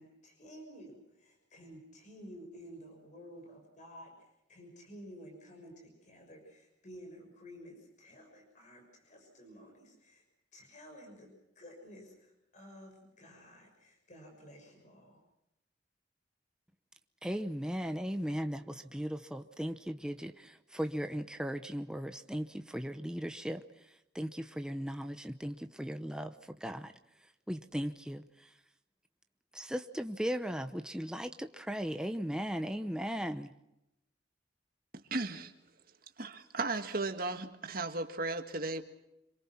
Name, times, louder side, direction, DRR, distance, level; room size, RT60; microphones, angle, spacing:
voice 1, 0.0-4.1 4.5-10.2 10.5-15.2, equal, 40° left, 6.3 m, -52 dB
voice 2, 17.2-23.6 24.1-26.3 26.6-26.9 27.5-28.2 29.5-33.5, equal, 5° right, 0.8 m, -37 dB
voice 3, 34.9-35.5 36.2-38.8, right 3 dB, 55° right, 1.8 m, -35 dB
26.5 x 23.5 x 6.0 m
head